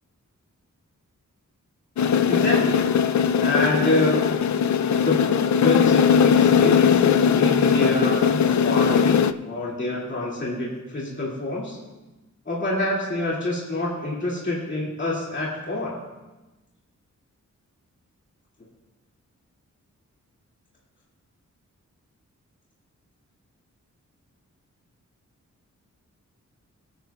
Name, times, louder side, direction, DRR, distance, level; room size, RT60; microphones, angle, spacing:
sound 1, 2.0-9.3, left 7 dB, 65° left, 0.4 m, -19 dB
voice 1, 2.3-3.0 3.4-4.2 5.0-11.8 12.5-16.0, left 2 dB, 35° left, -5 dB, 2.4 m, -27 dB
23.0 x 9.3 x 2.3 m, 1.1 s
wide cardioid pair, 115°, 31 cm